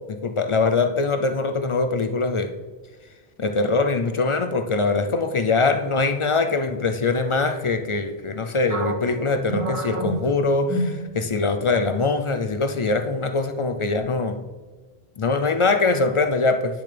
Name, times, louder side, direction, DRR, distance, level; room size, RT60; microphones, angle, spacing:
voice 1, 0.1-2.5 3.4-14.5 15.2-16.7, left 3 dB, 45° left, 8 dB, 0.4 m, -22 dB
sound 1, 8.7-11.5 11.9-12.1 12.7-13.2, right 1 dB, 35° right, 1.6 m, -30 dB
9.9 x 6.9 x 3.3 m, 1.3 s
omnidirectional pair, 1.0 m